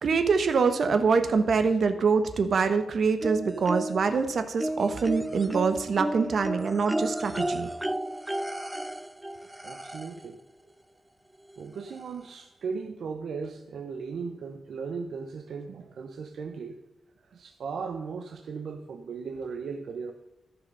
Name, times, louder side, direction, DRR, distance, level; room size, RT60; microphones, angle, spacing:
voice 1, 0.0-7.7, right 5 dB, 60° right, 8 dB, 1.2 m, -25 dB
sound 1, 3.2-4.2 4.6-10.3 11.5-11.6 12.0-12.1, right 1 dB, 10° right, 0.3 m, -33 dB
voice 2, 9.6-10.4 11.6-16.8 17.3-20.1, right 5 dB, 75° right, 4 dB, 0.9 m, -37 dB
14.0 x 6.0 x 5.5 m, 0.96 s
wide cardioid pair, 105°, 0 cm